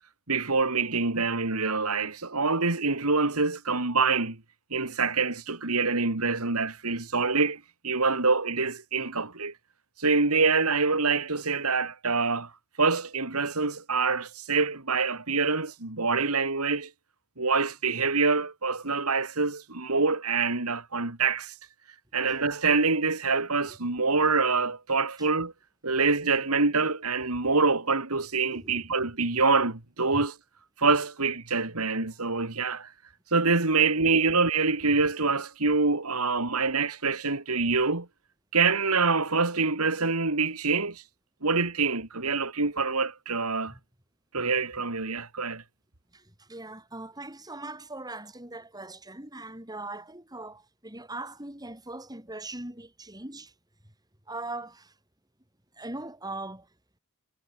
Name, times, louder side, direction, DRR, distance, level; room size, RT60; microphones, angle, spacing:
voice 1, 0.3-4.4 4.7-9.5 10.0-12.5 12.8-16.9 17.4-21.5 22.1-25.5 25.8-30.4 30.8-32.9 33.3-38.1 38.5-41.0 41.4-43.7 44.3-45.6, right 4 dB, 80° right, 3.0 m, -25 dB
voice 2, 46.5-53.5 54.3-54.9 55.8-56.7, right 2 dB, 20° right, 7.9 m, -40 dB
head